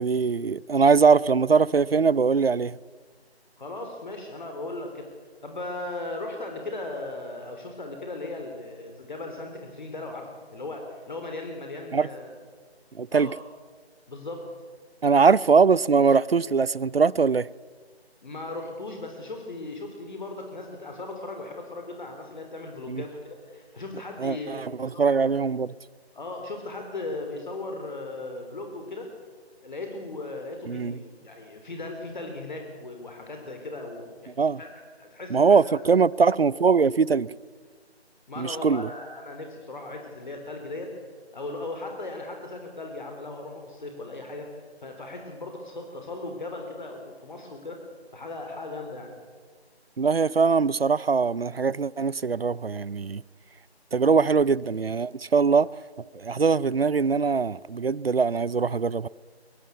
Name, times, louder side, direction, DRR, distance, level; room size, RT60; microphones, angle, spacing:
voice 1, 0.0-2.7 11.9-12.1 13.0-13.3 15.0-17.5 22.9-23.0 24.2-25.7 30.7-31.0 34.4-34.6 35.3-37.3 38.4-38.9 50.0-53.2 53.9-55.7 56.1-59.1, right 5 dB, 65° right, 0.7 m, -22 dB
voice 2, 3.6-5.1 5.4-12.4 13.1-13.3 14.1-14.5 15.3-15.4 18.2-25.0 26.1-29.1 29.6-35.8 38.3-40.9 41.3-44.5 44.8-47.8 48.1-49.1 54.0-54.2, left 2 dB, 45° left, 3.6 m, -37 dB
22.5 x 21.5 x 8.4 m
figure-of-eight pair, 160°, 32 cm